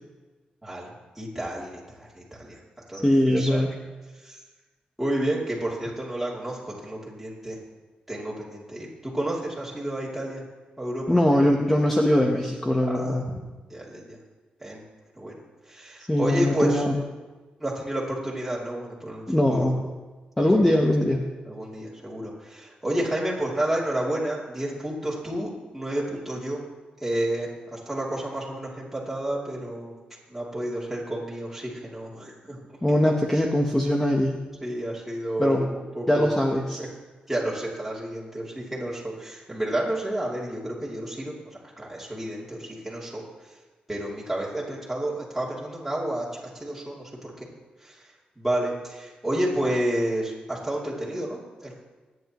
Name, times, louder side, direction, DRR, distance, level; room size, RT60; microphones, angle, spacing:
voice 1, 0.6-2.6 2.9-3.6 4.2-4.4 5.0-7.6 8.1-10.4 10.8-11.5 12.9-13.2 13.7-14.2 14.6-14.8 15.2-15.4 15.7-16.8 17.6-19.7 21.4-26.6 27.0-29.9 30.3-32.8 33.1-33.2 34.6-36.3 36.8-36.9 37.3-41.3 41.8-43.2 43.9-47.5 47.8-51.8, right 1 dB, 5° right, -7 dB, 2.8 m, -30 dB
voice 2, 3.0-3.7 11.1-13.3 16.1-17.0 19.3-19.8 20.4-21.3 32.8-34.5 35.4-35.7 36.1-36.8, left 1 dB, 10° left, 1 dB, 1.0 m, -21 dB
25.0 x 9.4 x 3.0 m, 1.3 s
wide cardioid pair, 135°, 3 cm